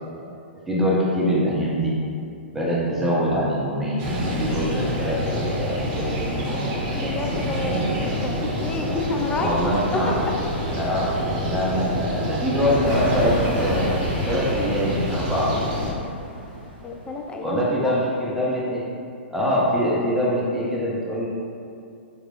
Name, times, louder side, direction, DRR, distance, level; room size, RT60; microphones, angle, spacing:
voice 1, 0.7-1.9 2.5-6.7 7.6-8.1 9.4-10.1 10.8-11.1 11.4-13.9 14.2-15.5 17.4-18.8 19.3-21.3, equal, 5° right, -7 dB, 0.8 m, -24 dB
sound 1, 4.0-15.9, equal, 35° right, 0.9 m, -27 dB
voice 2, 6.9-9.5 9.9-10.4 16.8-17.9, left 3 dB, 15° left, 1 dB, 0.4 m, -29 dB
sound 2, 12.7-17.3, equal, 45° left, 1.4 m, -30 dB
4.6 x 3.2 x 2.5 m, 2.5 s
figure-of-eight pair, 115°, 6 cm